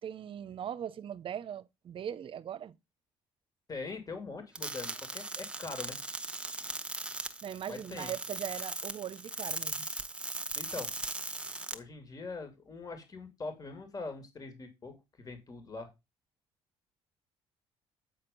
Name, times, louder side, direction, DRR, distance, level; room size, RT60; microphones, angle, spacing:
voice 1, 0.0-2.7 7.4-9.9, right 9 dB, 50° right, 0.7 m, -40 dB
voice 2, 3.7-6.0 7.7-8.1 10.6-10.9 11.7-15.9, left 3 dB, 35° left, 2.5 m, -42 dB
sound 1, 4.6-11.7, right 2 dB, 10° right, 1.1 m, -39 dB
8.7 x 4.3 x 5.2 m
supercardioid pair, 80°, 11 cm